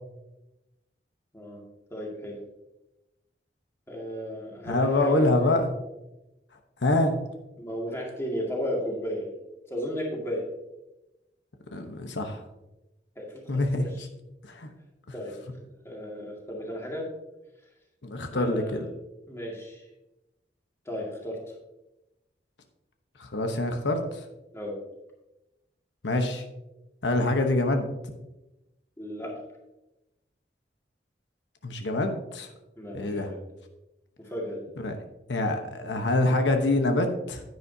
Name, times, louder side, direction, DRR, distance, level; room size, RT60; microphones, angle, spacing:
voice 1, 1.9-2.3 3.9-5.6 7.6-9.3 9.7-10.5 13.2-14.0 15.1-15.4 15.8-17.1 18.3-18.9 19.3-19.9 20.9-21.4 24.5-24.8 29.0-29.4 32.8-33.4 34.2-34.7, equal, 15° left, -2 dB, 2.1 m, -34 dB
voice 2, 4.6-5.7 6.8-7.1 11.7-12.4 13.5-14.1 14.4-14.7 18.0-18.9 23.2-24.2 26.0-26.4 27.0-27.9 31.6-32.5 32.9-33.3 34.8-35.0 35.3-37.4, left 2 dB, 85° left, 5 dB, 1.0 m, -25 dB
10.5 x 9.6 x 2.8 m, 0.97 s
head